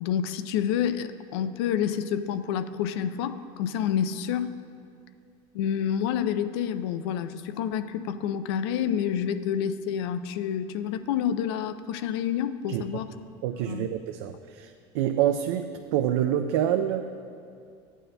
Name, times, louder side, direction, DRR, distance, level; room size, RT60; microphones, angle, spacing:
voice 1, 0.0-4.5 5.5-13.1 13.7-13.9, left 9 dB, 80° left, 12 dB, 0.4 m, -28 dB
voice 2, 13.4-17.1, right 10 dB, 80° right, 6 dB, 0.4 m, -27 dB
13.5 x 9.0 x 2.2 m, 2.4 s
supercardioid pair, 140°, 13 cm